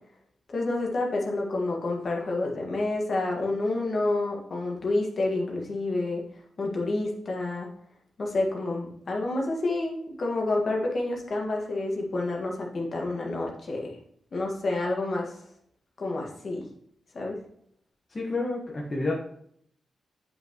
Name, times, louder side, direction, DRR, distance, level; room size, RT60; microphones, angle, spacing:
voice 1, 0.5-6.2 6.6-7.7 8.2-13.9 14.3-15.3 16.0-16.7 17.1-17.4, left 2 dB, 50° left, 0 dB, 1.9 m, -29 dB
voice 2, 18.1-19.1, left 2 dB, 30° left, -3 dB, 1.4 m, -29 dB
8.2 x 5.7 x 3.1 m, 0.65 s
cardioid pair, 110°, 0 cm